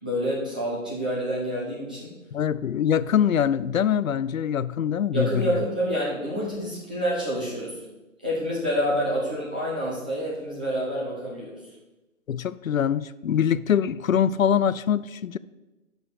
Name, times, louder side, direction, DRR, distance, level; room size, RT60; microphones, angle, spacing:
voice 1, 0.0-2.1 5.1-7.9 8.2-11.7, equal, 5° right, -7 dB, 0.5 m, -28 dB
voice 2, 2.3-5.6 12.3-15.4, left 8 dB, 85° left, 18 dB, 0.5 m, -23 dB
7.1 x 5.2 x 6.5 m, 1.0 s
figure-of-eight pair, 145°, 39 cm